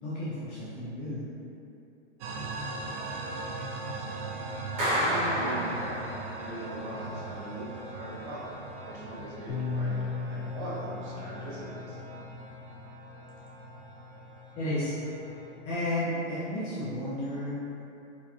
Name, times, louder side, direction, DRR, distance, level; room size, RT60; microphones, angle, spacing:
voice 1, 0.0-1.3 14.6-15.2 15.6-17.5, left 1 dB, 25° left, -10 dB, 0.4 m, -32 dB
sound 1, 2.2-15.5, right 2 dB, 75° right, 0.6 m, -40 dB
Clapping, 4.8-6.4, equal, 20° right, 1.0 m, -29 dB
voice 2, 4.9-8.4 8.8-12.0, right 1 dB, 45° right, -8 dB, 1.2 m, -40 dB
Bass guitar, 9.5-15.7, left 4 dB, 70° left, 0.6 m, -39 dB
4.1 x 2.2 x 2.8 m, 2.8 s
hypercardioid pair, 145°, 36 cm